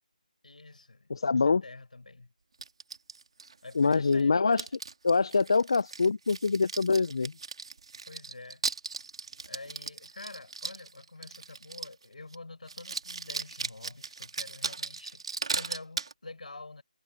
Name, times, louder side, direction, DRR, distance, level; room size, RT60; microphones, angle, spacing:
voice 1, 0.4-2.3 3.6-4.7 8.1-8.6 9.4-16.8, left 3 dB, 70° left, 6.7 m, -47 dB
voice 2, 1.1-1.6 3.8-4.6 5.0-7.3, left 4 dB, 35° left, 0.3 m, -24 dB
sound 1, 2.6-4.2 4.5-12.0 12.3-12.4 12.7-16.1, right 4 dB, 45° right, 3.1 m, -38 dB
figure-of-eight pair, 170°, 4 cm